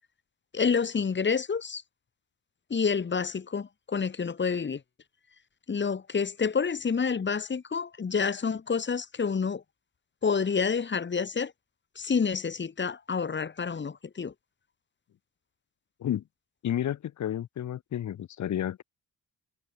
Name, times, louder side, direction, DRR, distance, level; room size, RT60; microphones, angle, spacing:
voice 1, 0.5-1.8 2.7-4.8 5.7-9.6 10.2-11.5 12.0-14.3, left 5 dB, 40° left, 5.6 m, -28 dB
voice 2, 16.6-18.8, left 11 dB, 70° left, 5.3 m, -31 dB
cardioid pair, 90°, 30 cm